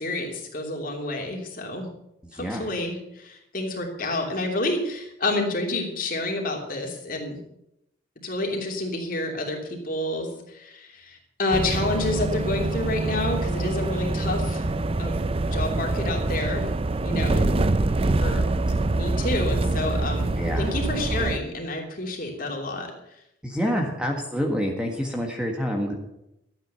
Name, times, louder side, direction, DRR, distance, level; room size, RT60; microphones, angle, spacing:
voice 1, 0.0-1.9 2.3-7.4 8.2-14.7 15.0-15.2 15.5-16.7 17.0-17.5 18.2-18.5 18.9-20.3 20.6-22.9, left 2 dB, 45° left, 1 dB, 3.0 m, -29 dB
voice 2, 2.3-2.7 17.2-17.6 20.4-20.7 23.4-25.9, equal, 5° right, 1 dB, 1.6 m, -27 dB
sound 1, 11.5-21.4, right 2 dB, 30° right, 0.5 m, -25 dB
13.0 x 9.0 x 6.9 m, 0.82 s
head